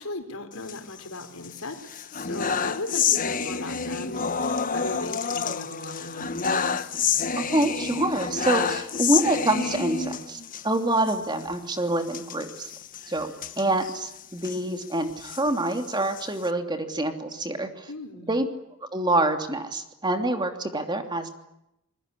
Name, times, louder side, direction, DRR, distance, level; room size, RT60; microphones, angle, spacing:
voice 1, 0.0-6.9 17.9-18.4, left 2 dB, 90° left, 7 dB, 4.3 m, -37 dB
sound 1, 0.5-1.5 1.9-10.6 11.0-11.2 11.4-11.5 12.1-14.6 15.1-16.5, left 6 dB, 40° left, 1.3 m, -29 dB
voice 2, 7.4-12.7 13.1-13.3 13.6-17.9 18.3-18.5 18.9-21.3, right 1 dB, 20° right, 5 dB, 3.0 m, -26 dB
27.5 x 21.5 x 10.0 m, 0.84 s
head